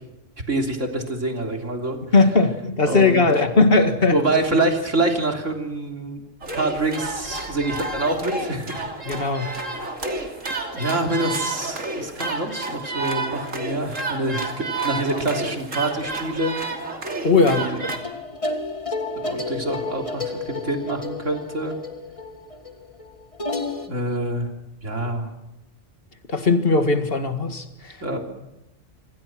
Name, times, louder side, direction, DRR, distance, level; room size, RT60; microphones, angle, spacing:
voice 1, 0.5-2.0 2.8-3.2 4.1-6.2 6.6-8.9 9.4-9.7 10.7-16.6 17.4-17.8 19.2-21.8 23.9-24.5 24.8-25.3 28.0-28.2, right 2 dB, 75° right, 3.8 m, -26 dB
voice 2, 2.1-4.2 9.1-9.6 17.2-17.7 26.3-28.0, left 3 dB, 50° left, 2.2 m, -19 dB
sound 1, 6.4-18.0, right 2 dB, 90° right, 3.3 m, -30 dB
sound 2, 17.9-23.9, left 2 dB, 25° left, 1.7 m, -31 dB
27.0 x 25.5 x 6.2 m
omnidirectional pair, 1.3 m